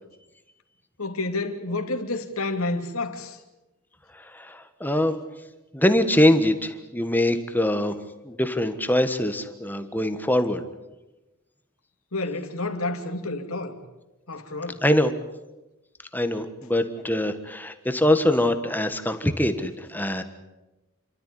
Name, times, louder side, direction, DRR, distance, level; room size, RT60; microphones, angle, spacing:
voice 1, 1.0-3.4 12.1-13.8 14.3-14.8, left 2 dB, 85° left, 2.8 m, -29 dB
voice 2, 4.3-5.2 5.7-7.9 8.2-10.6 14.8-15.1 16.1-20.2, left 1 dB, 10° left, 1.4 m, -23 dB
29.5 x 13.0 x 9.9 m
head